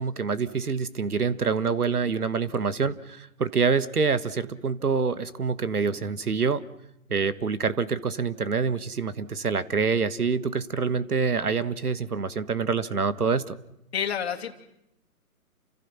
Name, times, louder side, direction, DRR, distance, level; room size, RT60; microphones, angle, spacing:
voice 1, 0.0-6.6 7.1-13.6, right 5 dB, 75° right, 15 dB, 1.6 m, -26 dB
voice 2, 13.9-14.7, left 8 dB, 45° left, 4 dB, 2.7 m, -29 dB
29.5 x 27.0 x 5.9 m, 0.83 s
figure-of-eight pair, 140°, 45 cm